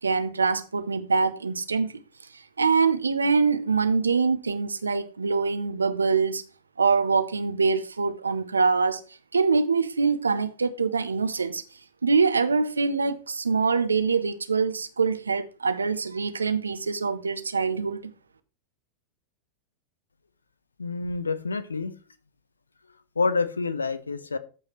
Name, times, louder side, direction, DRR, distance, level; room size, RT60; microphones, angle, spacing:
voice 1, 0.0-2.0 2.6-6.4 6.8-9.0 9.3-11.6 12.0-18.0, right 4 dB, 75° right, 0.8 m, -24 dB
voice 2, 20.8-21.9 23.2-24.4, left 4 dB, 75° left, 0.8 m, -27 dB
14.5 x 4.8 x 3.1 m
figure-of-eight pair, 90°, 0 cm